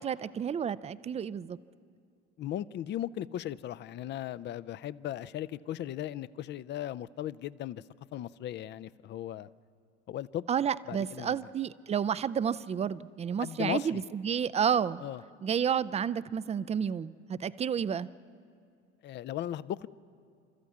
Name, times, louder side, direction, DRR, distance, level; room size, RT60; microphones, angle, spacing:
voice 1, 0.0-1.6 10.5-15.0 15.4-18.1, right 8 dB, 20° right, 0.5 m, -30 dB
voice 2, 2.4-7.8 8.1-9.5 10.1-10.4 10.9-11.4 13.4-14.0 15.0-15.2 19.0-19.9, left 12 dB, 30° left, 0.5 m, -37 dB
29.5 x 13.5 x 8.5 m
figure-of-eight pair, 70°, 35 cm